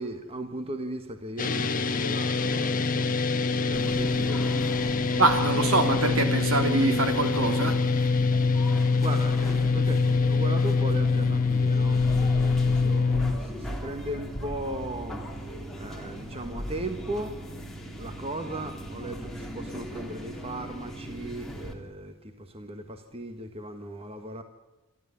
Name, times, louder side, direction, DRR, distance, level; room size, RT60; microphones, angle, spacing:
voice 1, 0.0-3.1 3.6-4.6 5.4-5.9 9.0-17.4 18.0-24.4, right 1 dB, 25° right, 7 dB, 1.5 m, -37 dB
sound 1, 1.4-13.3, left 4 dB, 40° left, 1.3 m, -24 dB
sound 2, 3.7-21.7, right 1 dB, ahead, 3.2 m, -38 dB
voice 2, 5.2-7.8, right 2 dB, 70° right, 6 dB, 3.2 m, -24 dB
27.0 x 12.5 x 9.7 m, 1.1 s
head